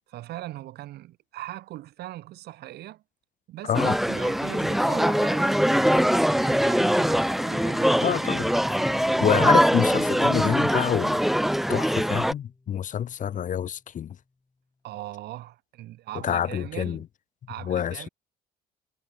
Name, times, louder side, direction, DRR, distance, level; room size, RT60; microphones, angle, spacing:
voice 1, 0.1-3.0 3.5-3.8 4.1-8.4 14.8-17.0 17.5-18.1, right 15 dB, 75° right, 3.1 m, -40 dB
voice 2, 3.6-4.0 8.0-8.5 9.2-11.2 11.7-14.2 16.2-17.0 17.6-18.1, left 9 dB, 50° left, 1.8 m, -27 dB
sound 1, 3.7-12.3, equal, ahead, 1.2 m, -22 dB
Bowed string instrument, 7.0-12.5, left 3 dB, 20° left, 7.1 m, -41 dB
cardioid pair, 110°, 17 cm